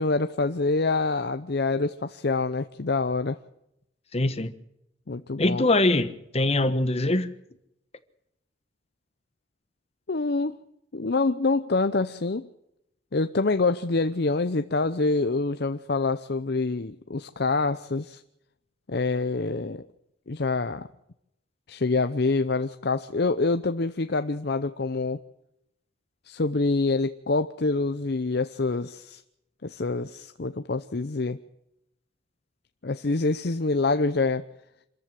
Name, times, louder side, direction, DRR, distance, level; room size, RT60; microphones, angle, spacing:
voice 1, 0.0-3.4 5.1-5.6 10.1-10.6 10.9-12.5 13.1-18.2 18.9-19.8 20.3-20.9 21.7-25.2 26.3-29.2 29.6-31.4 32.8-34.4, left 3 dB, 55° left, 0.7 m, -26 dB
voice 2, 4.1-4.5 5.4-7.3, left 2 dB, 35° left, 1.2 m, -23 dB
26.5 x 14.0 x 7.5 m
head